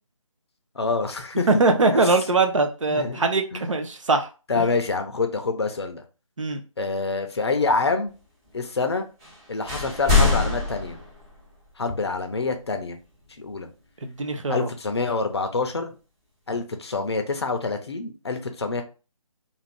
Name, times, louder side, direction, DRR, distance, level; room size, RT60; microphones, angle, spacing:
voice 1, 0.7-1.6 1.9-2.2 2.9-3.3 3.5-3.6 4.5-6.0 6.8-8.1 8.5-9.0 9.5-11.0 11.8-13.0 13.4-13.7 14.5-15.9 16.5-18.8, left 4 dB, 50° left, 6 dB, 0.6 m, -26 dB
voice 2, 1.5-4.3 4.6-4.7 6.4-6.6 14.0-14.7, right 3 dB, 60° right, 5 dB, 0.6 m, -22 dB
sound 1, 9.2-9.4 9.7-11.7, left 3 dB, 15° right, 0.8 m, -23 dB
2.5 x 2.5 x 3.3 m, 0.33 s
figure-of-eight pair, 155°, 18 cm